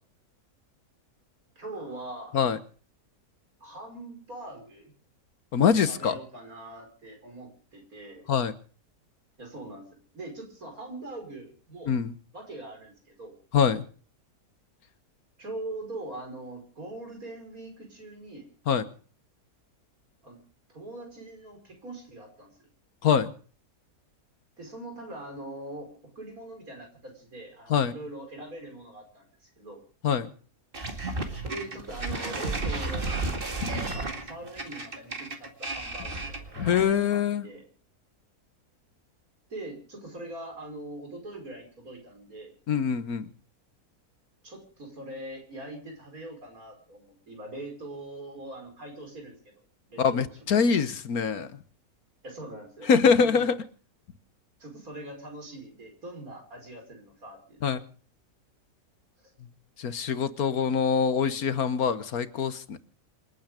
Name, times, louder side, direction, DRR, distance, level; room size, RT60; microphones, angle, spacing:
voice 1, 1.6-2.4 3.6-4.9 5.9-8.3 9.4-9.9 10.1-11.9 12.3-13.3 15.4-18.5 20.2-20.4 20.7-22.5 24.6-29.8 31.4-33.1 33.8-36.8 37.1-37.6 39.5-42.5 44.4-49.5 49.9-50.8 52.2-53.6 54.6-57.7 60.5-60.6, right 1 dB, 65° right, 3 dB, 5.7 m, -42 dB
voice 2, 5.5-6.2 8.3-8.5 11.9-12.1 13.5-13.8 18.7-18.8 23.0-23.3 27.7-27.9 30.0-30.3 33.6-33.8 36.6-37.5 42.7-43.3 50.0-51.5 52.9-53.6 57.6-57.8 59.8-62.8, left 6 dB, 75° left, 13 dB, 1.6 m, -24 dB
sound 1, 30.7-37.0, right 2 dB, 35° right, 2.3 m, -33 dB
27.5 x 9.4 x 5.1 m, 0.42 s
omnidirectional pair, 1.6 m